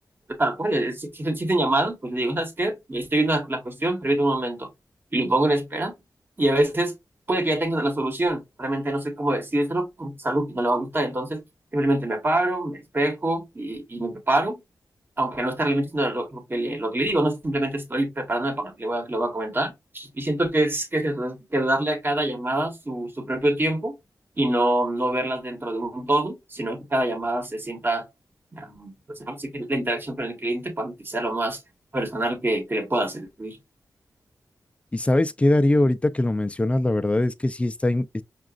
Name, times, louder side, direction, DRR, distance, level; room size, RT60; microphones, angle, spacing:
voice 1, 0.4-4.7 5.1-5.9 6.4-6.9 7.3-11.4 11.7-14.6 15.2-23.9 24.4-28.1 28.5-31.6 31.9-33.6, right 1 dB, 30° right, 1.2 m, -25 dB
voice 2, 34.9-38.2, left 1 dB, 15° left, 0.4 m, -22 dB
5.8 x 2.4 x 2.4 m
wide cardioid pair, 85°, 7 cm